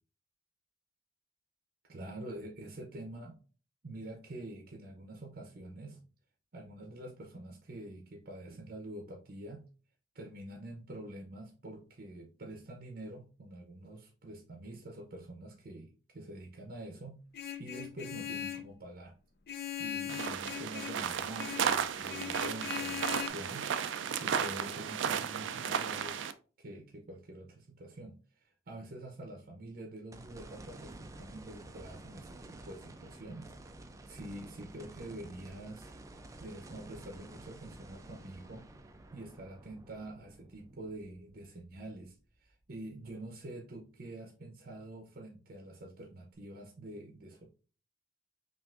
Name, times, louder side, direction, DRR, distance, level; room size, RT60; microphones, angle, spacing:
voice 1, 1.9-3.3 3.8-6.0 6.5-9.6 10.1-17.2 17.6-19.1 19.8-23.7 24.2-26.2 26.6-33.5 34.1-35.9 36.4-38.7 39.1-42.1 42.4-47.5, right 1 dB, 55° right, 2 dB, 0.7 m, -46 dB
Vehicle horn car horn honking, 17.3-18.7 19.5-21.0 21.4-21.7 22.1-23.3, left 10 dB, 55° left, 0.5 m, -40 dB
sound 1, 20.1-26.3, right 7 dB, 90° right, 0.4 m, -34 dB
sound 2, 30.1-42.4 42.9-43.0 46.3-46.4, right 2 dB, 20° right, 0.3 m, -51 dB
5.7 x 2.5 x 2.4 m, 0.37 s
head